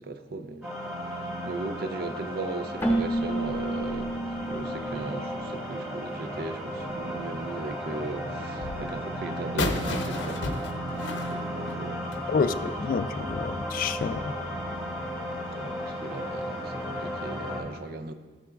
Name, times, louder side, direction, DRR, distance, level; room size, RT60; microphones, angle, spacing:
voice 1, 0.0-10.4 10.9-12.3 12.7-12.8 15.6-18.1, right 3 dB, 55° right, 0.5 m, -38 dB
sound 1, 0.6-17.6, equal, 15° right, 2.1 m, -34 dB
Keyboard (musical), 2.8-6.4, right 1 dB, 10° left, 0.7 m, -31 dB
sound 2, 9.6-12.3, left 2 dB, 75° left, 0.7 m, -32 dB
voice 2, 12.3-14.3, left 5 dB, 50° left, 0.3 m, -28 dB
13.5 x 6.8 x 2.4 m
head